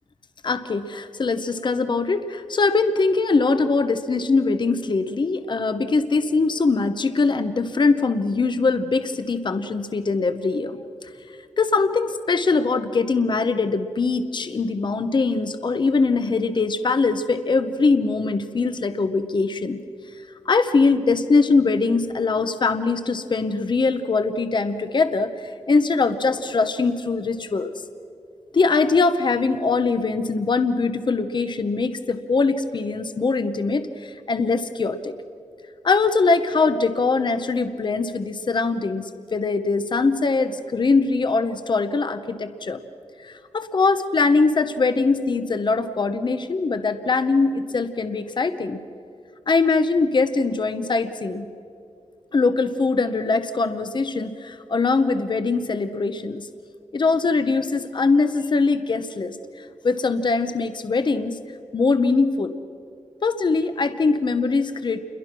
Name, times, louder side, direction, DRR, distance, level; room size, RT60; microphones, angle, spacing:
voice 1, 0.4-10.8 11.6-19.8 20.5-27.7 28.5-35.2 35.8-42.8 43.2-48.8 49.5-51.5 52.3-56.5 56.9-61.4 61.7-62.6 63.2-65.0, left 4 dB, 40° left, 10 dB, 0.9 m, -22 dB
29.0 x 22.0 x 6.1 m, 2.4 s
wide cardioid pair, 175°, 12 cm